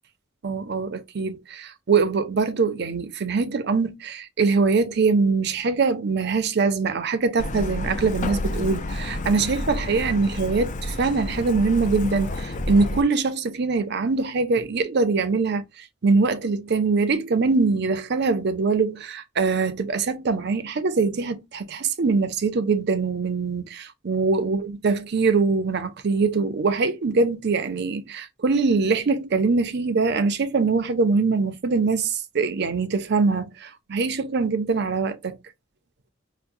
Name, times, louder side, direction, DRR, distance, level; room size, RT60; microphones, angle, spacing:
voice 1, 0.4-35.4, right 4 dB, 55° right, 0.6 m, -23 dB
Truck, 7.4-13.0, left 1 dB, 40° left, 0.4 m, -30 dB
5.7 x 2.1 x 2.6 m
head